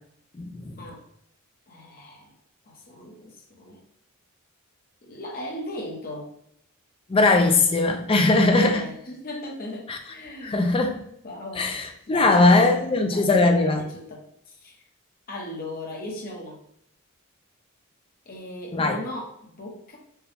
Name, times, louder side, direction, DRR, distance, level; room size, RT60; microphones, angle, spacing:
voice 1, 0.4-0.7 7.1-8.8 9.9-10.0 10.4-11.0 11.6-13.8 18.7-19.0, left 2 dB, 25° left, 5 dB, 0.3 m, -20 dB
voice 2, 1.7-2.3 2.7-3.8 5.0-6.3 8.4-10.7 11.2-11.7 12.1-12.7 13.1-14.8 15.3-16.6 18.3-20.0, left 1 dB, 45° left, -1 dB, 0.9 m, -37 dB
4.5 x 2.2 x 3.3 m, 0.71 s
head